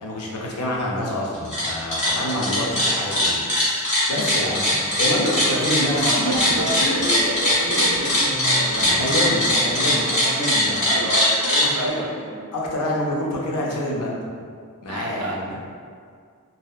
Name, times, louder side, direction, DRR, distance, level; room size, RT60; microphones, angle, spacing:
voice 1, 0.0-7.0 9.0-11.0 11.6-12.0 12.5-14.2 14.8-15.6, left 1 dB, 85° left, -3 dB, 0.5 m, -27 dB
sound 1, 1.3-1.7 1.9-11.6, left 1 dB, 35° left, 0.9 m, -20 dB
voice 2, 2.2-2.8 5.5-5.7 6.0-9.3 10.9-12.4 14.9-15.4, right 1 dB, 85° right, 0 dB, 0.4 m, -31 dB
sound 2, 4.1-10.8, equal, 5° left, 0.4 m, -34 dB
2.6 x 2.1 x 2.2 m, 2.1 s
head